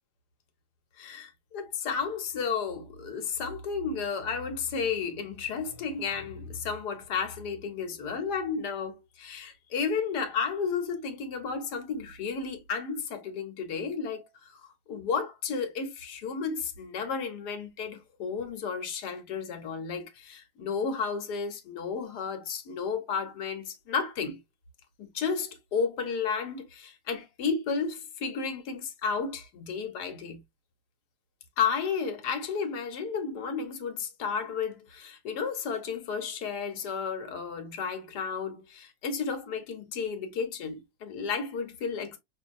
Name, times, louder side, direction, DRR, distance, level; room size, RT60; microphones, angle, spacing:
voice 1, 1.0-14.6 14.9-24.4 25.1-30.4 31.6-42.2, left 5 dB, 80° left, 1.5 m, -32 dB
5.2 x 2.6 x 2.5 m
omnidirectional pair, 1.7 m